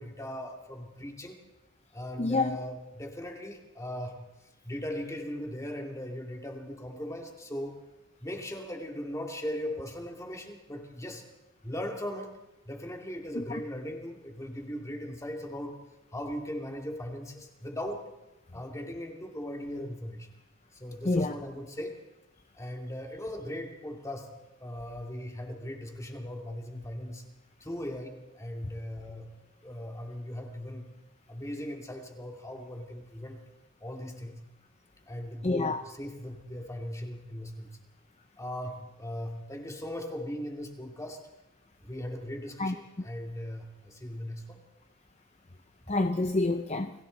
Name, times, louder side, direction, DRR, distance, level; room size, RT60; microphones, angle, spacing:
voice 1, 0.0-1.4 1.9-4.2 4.6-7.8 8.2-11.2 11.6-12.3 12.7-15.8 16.1-18.1 18.5-20.3 20.7-22.0 22.5-24.3 24.6-27.2 27.6-29.3 29.6-30.9 31.3-33.4 33.8-34.4 35.1-37.8 38.4-41.2 41.8-44.6, left 1 dB, 15° left, 2.6 m, -38 dB
voice 2, 2.2-2.6 13.4-13.5 21.0-21.3 35.4-35.8 42.6-42.7 45.9-46.9, left 2 dB, 30° left, 0.7 m, -27 dB
29.5 x 21.5 x 4.1 m
head